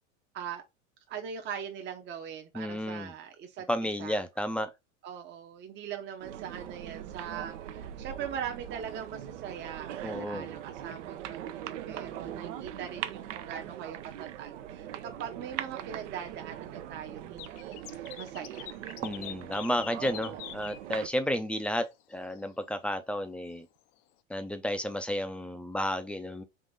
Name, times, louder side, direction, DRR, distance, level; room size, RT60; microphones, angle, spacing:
voice 1, 1.1-4.2 5.0-18.8 20.0-20.4, right 8 dB, 30° right, 0.7 m, -41 dB
voice 2, 2.5-3.1 3.7-4.7 10.0-10.5 19.0-23.7 24.3-26.4, equal, 5° left, 0.4 m, -32 dB
sound 1, 6.2-21.1, right 11 dB, 85° right, 0.6 m, -41 dB
sound 2, 17.4-20.8 21.4-21.5 21.9-22.0 22.3-22.4, left 14 dB, 55° left, 0.5 m, -44 dB
3.8 x 2.5 x 3.6 m
hypercardioid pair, 105°, 36 cm